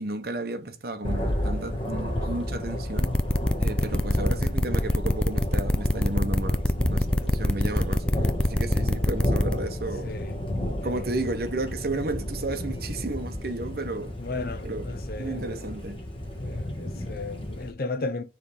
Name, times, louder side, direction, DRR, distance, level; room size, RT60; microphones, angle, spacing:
voice 1, 0.0-3.1 3.6-6.6 6.9-10.1 10.8-14.1 14.6-16.0, right 2 dB, 50° right, 0.8 m, -33 dB
Thunder, 1.0-17.7, left 1 dB, 30° left, 1.4 m, -32 dB
sound 1, 3.0-9.5, left 1 dB, 5° left, 0.3 m, -24 dB
voice 2, 10.0-10.4 10.8-11.1 14.2-15.6 16.4-18.2, left 3 dB, 50° left, 0.6 m, -35 dB
6.1 x 3.3 x 5.3 m
head